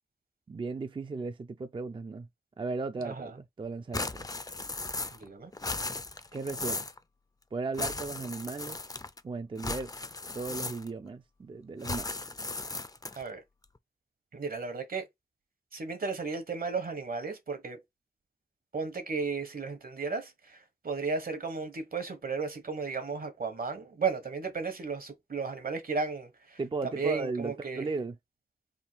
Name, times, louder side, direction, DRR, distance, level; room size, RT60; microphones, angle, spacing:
voice 1, 0.5-2.3 2.6-4.3 6.3-6.9 7.5-8.8 9.2-9.9 10.3-12.1 26.6-28.2, right 3 dB, 35° right, 0.4 m, -36 dB
sound 1, 3.9-5.3 5.5-7.0 7.7-9.2 9.6-11.1 11.8-13.3, left 3 dB, 25° left, 0.4 m, -36 dB
voice 2, 5.1-5.5 13.2-13.4 14.3-15.1 15.7-17.8 18.7-26.6 27.0-27.8, right 4 dB, 70° right, 1.2 m, -34 dB
3.6 x 2.3 x 4.4 m
cardioid pair, 40°, 16 cm